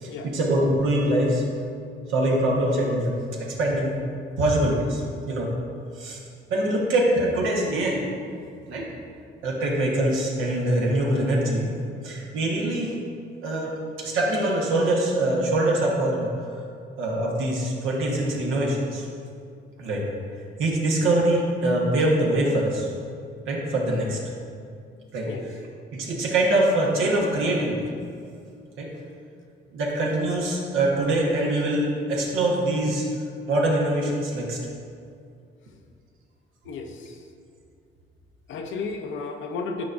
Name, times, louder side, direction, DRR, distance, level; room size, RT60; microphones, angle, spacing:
voice 1, 0.0-1.4 2.1-3.1 3.4-4.0 4.4-5.5 6.0-6.2 6.5-8.0 8.7-8.9 9.4-11.7 12.0-13.0 13.4-16.3 17.0-19.1 19.8-20.0 20.6-22.9 23.5-24.2 25.1-25.3 25.9-27.9 28.8-28.9 29.7-33.1 33.5-34.6, right 1 dB, 85° right, -3 dB, 1.2 m, -23 dB
voice 2, 36.6-37.2 38.5-39.8, left 4 dB, 80° left, 4 dB, 0.7 m, -33 dB
9.2 x 4.7 x 2.5 m, 2.3 s
cardioid pair, 90°, 20 cm